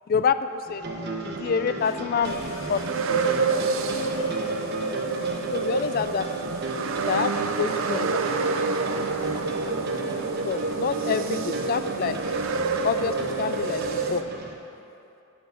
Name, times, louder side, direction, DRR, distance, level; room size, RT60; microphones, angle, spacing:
voice 1, 0.1-0.8 1.3-2.3 2.7-2.8 5.5-6.3 7.1-8.1 10.5-12.2 12.8-14.2, left 6 dB, 45° left, 12 dB, 0.3 m, -27 dB
sound 1, 0.7-14.5, right 2 dB, 50° right, 1.0 m, -35 dB
voice 2, 2.2-2.9 3.9-4.5 7.9-8.0 8.7-8.9 9.2-9.6 9.9-10.0 11.0-11.1, left 5 dB, 70° left, 4 dB, 0.8 m, -46 dB
sound 2, 2.2-14.2, right 4 dB, 70° right, 0.5 m, -28 dB
10.5 x 4.6 x 7.8 m, 2.7 s
head